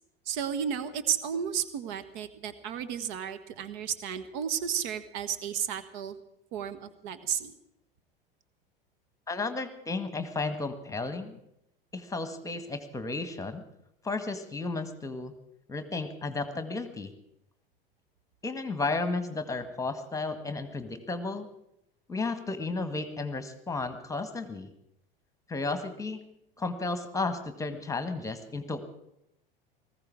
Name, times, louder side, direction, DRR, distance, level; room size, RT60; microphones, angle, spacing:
voice 1, 0.3-6.2 6.5-7.5, right 8 dB, 55° right, 12 dB, 1.3 m, -33 dB
voice 2, 9.3-11.4 11.9-13.6 14.0-15.3 15.7-17.1 18.4-21.5 22.1-24.7 25.5-26.2 26.6-28.8, left 3 dB, 10° left, 9 dB, 1.7 m, -33 dB
19.5 x 15.0 x 4.8 m, 0.80 s
figure-of-eight pair, 80°, 29 cm